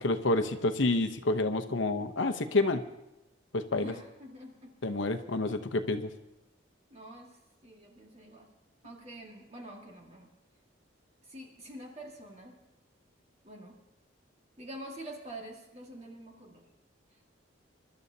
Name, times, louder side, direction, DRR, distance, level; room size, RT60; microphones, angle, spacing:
voice 1, 0.0-2.8 3.5-3.9 4.8-6.1, left 2 dB, 75° left, 7 dB, 0.9 m, -28 dB
voice 2, 3.8-4.7 6.9-8.5 8.8-10.3 11.2-12.6 13.4-13.8 14.6-16.7 17.1-17.2, right 1 dB, 35° right, 0 dB, 1.9 m, -47 dB
27.0 x 12.0 x 2.8 m, 0.95 s
head